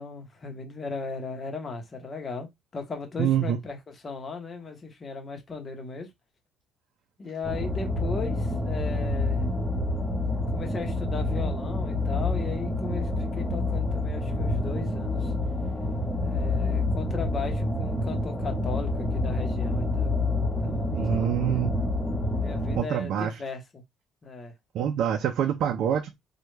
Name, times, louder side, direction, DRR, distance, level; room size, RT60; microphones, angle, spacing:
voice 1, 0.0-2.5 2.7-6.1 7.2-9.5 10.5-15.3 16.2-20.1 20.6-21.6 22.4-23.8 24.2-24.5, left 4 dB, 25° left, 0.9 m, -37 dB
voice 2, 3.2-3.6 20.9-21.7 22.8-23.4 24.7-26.2, right 9 dB, 60° right, 0.4 m, -26 dB
sound 1, 7.4-22.8, left 2 dB, ahead, 0.9 m, -28 dB
3.1 x 2.2 x 3.2 m
cardioid pair, 145°, 0 cm